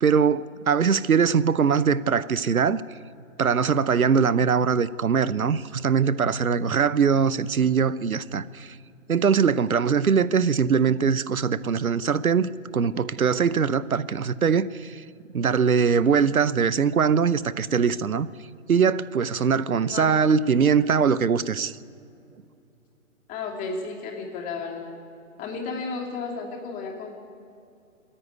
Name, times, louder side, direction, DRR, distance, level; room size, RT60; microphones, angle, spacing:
voice 1, 0.0-2.8 3.4-8.8 9.1-15.0 15.3-18.3 18.7-21.7, right 6 dB, 90° right, 0.8 m, -22 dB
voice 2, 23.3-25.0 25.4-27.2, left 4 dB, 20° left, 2.8 m, -33 dB
28.0 x 10.0 x 9.5 m
figure-of-eight pair, 135°, 41 cm